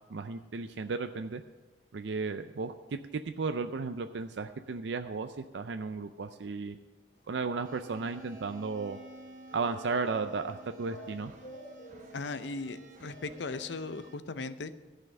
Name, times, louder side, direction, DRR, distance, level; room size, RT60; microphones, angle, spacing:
voice 1, 0.1-1.4 1.9-6.8 7.3-9.0 9.5-11.3, right 4 dB, 80° right, 8 dB, 0.5 m, -34 dB
sound 1, 7.1-14.1, equal, 50° left, 2.5 m, -53 dB
sound 2, 7.6-14.1, right 1 dB, 45° right, 1.0 m, -52 dB
voice 2, 12.1-14.7, left 3 dB, 80° left, 12 dB, 0.6 m, -38 dB
14.0 x 5.6 x 7.4 m, 1.2 s
head